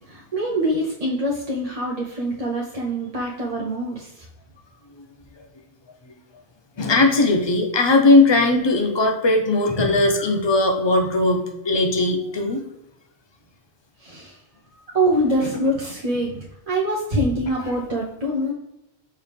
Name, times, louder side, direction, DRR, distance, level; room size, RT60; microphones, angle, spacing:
voice 1, 0.0-4.3 14.0-14.4 14.9-18.5, right 1 dB, 35° right, -3 dB, 0.8 m, -24 dB
voice 2, 6.8-12.6, left 2 dB, 25° left, 3 dB, 0.7 m, -18 dB
6.3 x 4.3 x 3.5 m, 0.87 s
omnidirectional pair, 1.2 m